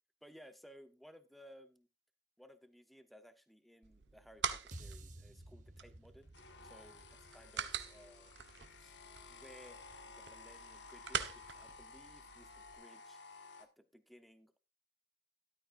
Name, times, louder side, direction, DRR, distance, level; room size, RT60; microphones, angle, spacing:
voice 1, 0.2-1.9 2.4-6.3 6.6-8.9 9.3-13.2 13.6-14.6, equal, ahead, 10 dB, 0.8 m, -60 dB
sound 1, 3.8-12.7, right 7 dB, 80° right, 1.1 m, -45 dB
sound 2, 4.7-9.1, right 1 dB, 45° right, 1.2 m, -55 dB
sound 3, 6.3-13.7, left 4 dB, 80° left, 1.6 m, -55 dB
13.5 x 12.0 x 2.5 m, 0.25 s
head